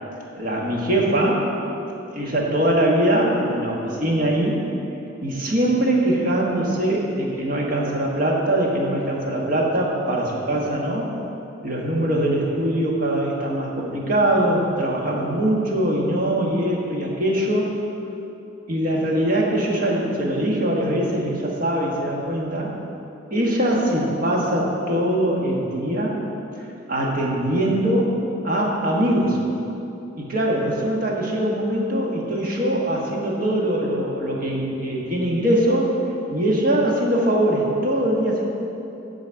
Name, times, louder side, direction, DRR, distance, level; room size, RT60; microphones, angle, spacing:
voice 1, 0.4-1.5 2.1-4.6 5.2-11.1 11.6-17.7 18.7-22.7 23.3-26.2 26.9-29.4 30.2-35.9 36.3-38.4, right 1 dB, 50° right, -2 dB, 1.4 m, -22 dB
10.5 x 4.1 x 7.4 m, 2.9 s
head